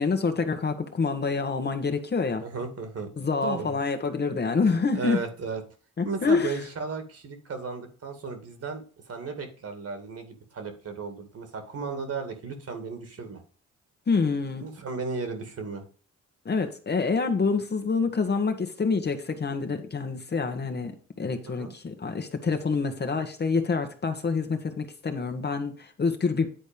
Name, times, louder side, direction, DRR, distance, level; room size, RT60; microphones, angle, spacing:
voice 1, 0.0-2.4 3.2-5.2 6.0-6.6 14.1-14.7 16.4-26.5, left 4 dB, 35° left, 6 dB, 1.4 m, -27 dB
voice 2, 2.4-3.1 3.4-3.8 4.9-5.6 6.0-13.4 14.6-15.8 21.5-21.7, right 4 dB, 50° right, 7 dB, 2.2 m, -35 dB
10.0 x 4.2 x 5.2 m, 0.41 s
cardioid pair, 90°, 30 cm